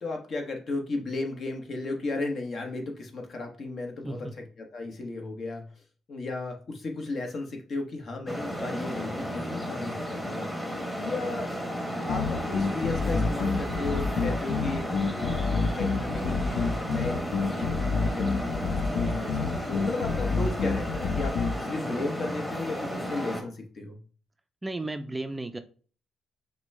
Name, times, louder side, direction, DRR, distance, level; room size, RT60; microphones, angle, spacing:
voice 1, 0.0-4.3 4.6-5.6 6.1-10.5 11.0-11.5 12.1-14.8 15.1-17.2 17.5-18.6 18.9-24.0, left 2 dB, 55° left, 3 dB, 1.1 m, -35 dB
Traffic noise roadway noise, 8.3-23.4, equal, 10° left, 1.2 m, -33 dB
sound 1, 12.1-21.6, left 4 dB, 75° left, 0.5 m, -28 dB
voice 2, 24.6-25.6, right 2 dB, 15° right, 8 dB, 0.4 m, -34 dB
5.9 x 2.2 x 3.4 m, 0.41 s
cardioid pair, 90°, 0 cm